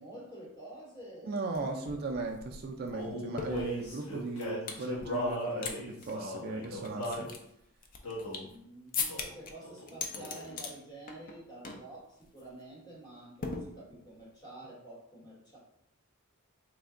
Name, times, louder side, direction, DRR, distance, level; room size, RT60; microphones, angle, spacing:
voice 1, 0.0-1.9 8.1-15.6, right 1 dB, 20° left, -5 dB, 1.1 m, -49 dB
voice 2, 1.2-7.3, right 3 dB, 45° right, 2 dB, 0.3 m, -37 dB
sound 1, 1.5-1.6 1.9-4.9 5.3-5.8 6.0-6.1 6.6-8.6 8.9-9.5 9.9-10.7 11.1-11.4 11.6-11.9 12.2-12.4 13.4-14.2, left 5 dB, 40° left, 0.4 m, -39 dB
Male singing, 2.9-7.3 8.0-8.5 9.1-9.4 9.6-10.6, left 1 dB, 80° left, 1.1 m, -37 dB
3.3 x 2.1 x 3.6 m, 0.74 s
head